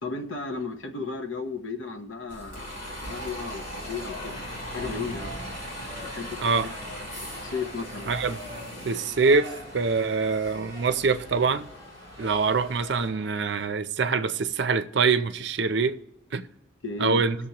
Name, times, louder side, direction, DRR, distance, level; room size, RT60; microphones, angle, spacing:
voice 1, 0.0-5.4 6.2-6.5 7.4-8.1 16.8-17.3, left 4 dB, 80° left, 0.9 m, -34 dB
Bus, 2.3-13.1, equal, 45° left, 3.3 m, -39 dB
sound 1, 3.8-13.7, left 1 dB, 20° left, 4.5 m, -45 dB
voice 2, 8.1-8.4 8.8-11.7 12.2-16.0 16.3-16.5 17.0-17.4, right 4 dB, 60° right, 0.5 m, -24 dB
19.0 x 6.8 x 2.9 m
head